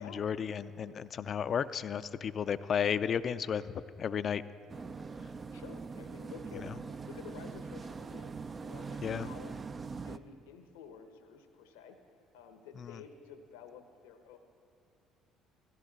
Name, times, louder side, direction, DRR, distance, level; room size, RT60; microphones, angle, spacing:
voice 1, 0.0-4.4 9.0-9.3, left 7 dB, 50° left, 15 dB, 0.4 m, -33 dB
sound 1, 4.7-10.2, right 4 dB, 35° right, 0.5 m, -42 dB
voice 2, 5.4-6.7 7.1-8.3 8.6-9.5 10.0-12.0 12.3-14.4, left 7 dB, 85° left, 7 dB, 0.9 m, -51 dB
15.5 x 15.0 x 4.1 m, 2.5 s
hypercardioid pair, 60°, 0 cm